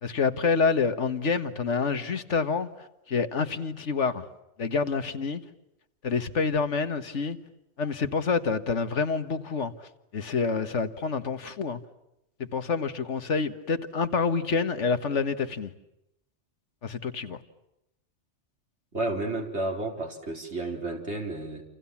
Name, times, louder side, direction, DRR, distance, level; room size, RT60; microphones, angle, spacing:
voice 1, 0.0-4.3 4.6-5.4 6.0-7.4 7.8-11.8 12.4-15.7 16.8-17.4, left 5 dB, 80° left, 10 dB, 1.8 m, -27 dB
voice 2, 18.9-21.6, right 2 dB, 65° right, 2 dB, 4.8 m, -31 dB
29.0 x 28.5 x 7.2 m, 0.86 s
omnidirectional pair, 1.2 m